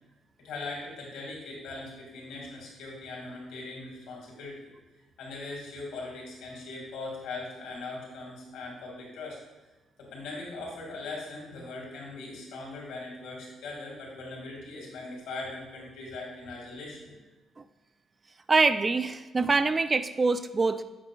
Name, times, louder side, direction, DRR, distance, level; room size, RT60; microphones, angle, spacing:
voice 1, 0.4-4.7 5.2-9.4 10.0-17.1, left 3 dB, 85° left, -2 dB, 1.9 m, -40 dB
voice 2, 18.5-20.8, right 3 dB, 30° right, 12 dB, 0.3 m, -24 dB
7.4 x 5.7 x 2.3 m, 1.2 s
cardioid pair, 90°, 0 cm